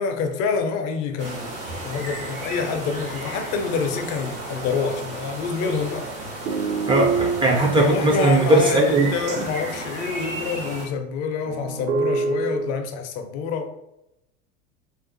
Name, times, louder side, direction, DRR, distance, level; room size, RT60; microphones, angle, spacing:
voice 1, 0.0-1.6 1.8-6.1 7.7-13.7, left 5 dB, 45° left, 0.5 m, -27 dB
sound 1, 1.2-10.9, right 2 dB, 80° right, 1.2 m, -34 dB
sound 2, 5.6-5.9 6.5-7.8 11.5-12.7, right 4 dB, 65° right, 0.5 m, -25 dB
voice 2, 6.9-9.1, right 2 dB, 15° right, 0.3 m, -18 dB
2.5 x 2.3 x 2.5 m
hypercardioid pair, 75°, 35 cm